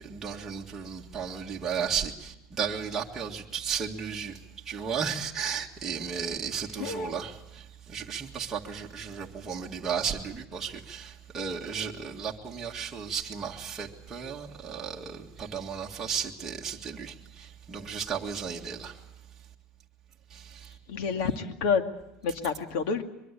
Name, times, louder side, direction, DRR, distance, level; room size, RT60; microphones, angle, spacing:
voice 1, 0.0-4.4 4.7-19.0 20.3-20.8, right 7 dB, 15° right, 1.9 m, -34 dB
voice 2, 6.8-7.1 20.9-21.8 22.2-23.0, left 5 dB, 65° left, 2.4 m, -28 dB
23.5 x 23.0 x 8.4 m
cardioid pair, 170°, 3 cm